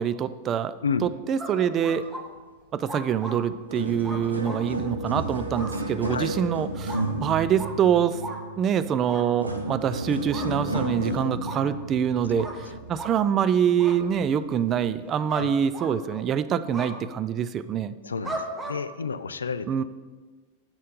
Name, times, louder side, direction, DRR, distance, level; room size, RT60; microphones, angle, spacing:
voice 1, 0.0-0.7 1.0-2.0 2.7-8.2 8.6-17.9 19.7-19.8, right 8 dB, 30° right, 13 dB, 0.3 m, -25 dB
sound 1, 1.4-2.2 2.9-3.4 4.0-4.6 5.5-5.7 6.0-6.2 6.9-7.0 7.6-7.7 8.2-8.4 9.1-9.2 10.3-10.9 11.4-11.6 12.4-12.6 13.0-13.1 13.8-14.0 15.3-15.5 15.7-16.3 16.7-16.9 18.2-18.8, right 2 dB, 15° right, 1.0 m, -36 dB
sound 2, 3.2-3.3 3.6-13.3 13.9-14.1 14.8-14.9, right 1 dB, 80° right, 0.7 m, -32 dB
voice 2, 18.0-19.8, left 5 dB, 70° left, 13 dB, 0.3 m, -31 dB
7.3 x 4.3 x 5.2 m, 1.3 s
figure-of-eight pair, 90°, 0 cm